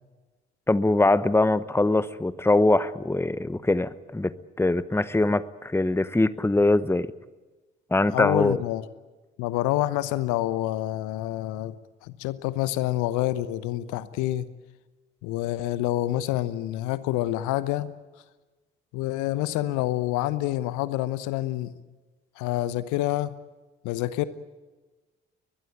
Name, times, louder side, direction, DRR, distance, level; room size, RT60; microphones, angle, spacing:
voice 1, 0.7-7.1 7.9-8.6, left 2 dB, 10° left, 1.0 m, -23 dB
voice 2, 8.1-8.9 9.4-11.7 12.0-14.5 15.2-17.9 18.9-21.7 22.4-23.4 23.8-24.2, left 15 dB, 70° left, 1.0 m, -27 dB
22.0 x 21.5 x 8.8 m
figure-of-eight pair, 45°, 32 cm